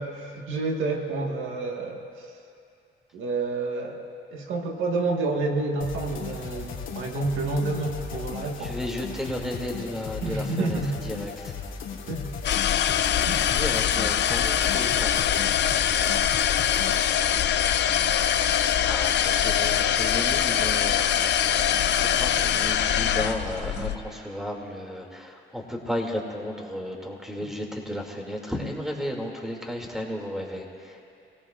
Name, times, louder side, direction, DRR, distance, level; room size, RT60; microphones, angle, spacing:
voice 1, 0.0-2.3 3.1-4.0 4.3-8.8 10.2-11.0 12.1-12.3 13.3-13.4 23.8-23.9, right 3 dB, 80° right, 1 dB, 1.6 m, -29 dB
sound 1, 5.8-17.1, left 6 dB, 80° left, 2.4 m, -37 dB
voice 2, 8.6-11.6 13.5-15.4 18.8-31.0, left 1 dB, ahead, 0 dB, 2.5 m, -34 dB
sound 2, 12.4-24.0, left 9 dB, 60° left, 0.6 m, -23 dB
27.0 x 18.0 x 2.5 m, 2.5 s
cardioid pair, 90°, 20 cm